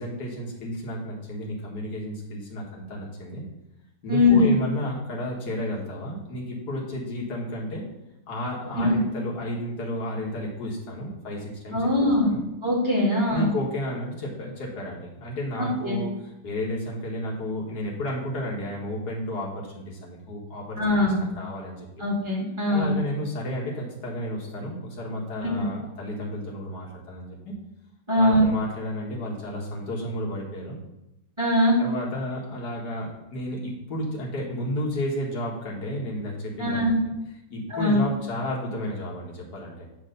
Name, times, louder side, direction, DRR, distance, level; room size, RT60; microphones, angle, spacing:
voice 1, 0.0-3.4 4.0-7.8 8.3-12.4 13.3-21.9 22.7-27.6 28.1-30.8 31.8-36.8 37.5-39.9, left 1 dB, 65° left, -3 dB, 2.2 m, -32 dB
voice 2, 4.1-4.5 8.8-9.0 11.7-12.3 12.6-13.5 15.6-16.0 20.8-21.2 22.0-22.9 25.4-25.6 28.1-28.4 31.4-31.8 36.6-36.9 37.7-38.0, left 1 dB, 15° right, -4 dB, 2.1 m, -21 dB
9.0 x 3.3 x 6.6 m, 0.92 s
omnidirectional pair, 1.9 m